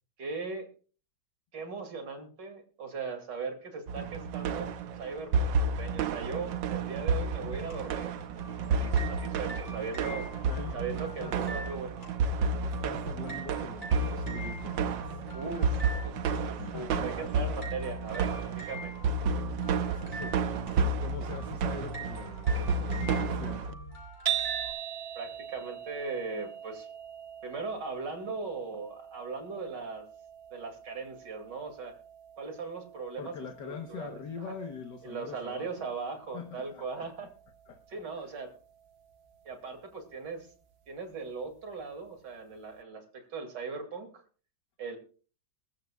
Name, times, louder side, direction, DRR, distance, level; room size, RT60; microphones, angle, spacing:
voice 1, 0.2-0.7 1.5-4.7 5.0-8.1 8.7-10.3 10.7-12.6 15.3-15.7 16.0-18.9 25.2-26.9 27.4-30.1 30.5-32.0 32.4-33.3 33.6-34.5 35.0-37.3 37.9-38.5 39.4-40.5 40.9-44.2 44.8-45.0, right 4 dB, 70° right, 7 dB, 3.0 m, -39 dB
sound 1, 3.9-23.7, right 4 dB, 85° right, 1.6 m, -31 dB
sound 2, 7.4-24.7, right 2 dB, 25° left, 5.8 m, -45 dB
voice 2, 10.5-10.8 11.2-11.4 12.6-15.2 16.4-18.5 18.8-18.9 19.4-23.8 33.2-35.9 36.3-37.3 37.7-37.8 38.1-38.3, left 6 dB, 70° left, 5 dB, 1.7 m, -44 dB
sound 3, 24.3-40.5, right 10 dB, 40° right, 1.1 m, -42 dB
22.0 x 13.5 x 2.3 m, 0.38 s
omnidirectional pair, 2.0 m